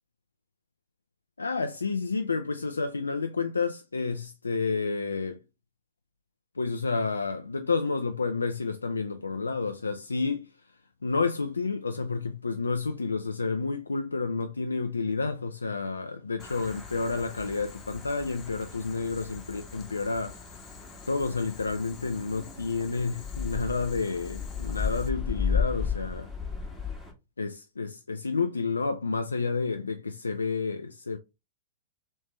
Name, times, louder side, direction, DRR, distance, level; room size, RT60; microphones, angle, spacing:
voice 1, 1.4-5.4 6.6-10.5 11.0-20.4 21.1-26.3 27.4-31.2, left 4 dB, 90° left, 0.3 m, -30 dB
Boiling, 16.4-25.1, left 6 dB, 30° left, 0.9 m, -51 dB
sound 1, 16.4-27.1, left 6 dB, 5° left, 1.4 m, -35 dB
3.2 x 3.1 x 3.1 m
hypercardioid pair, 105°, 0 cm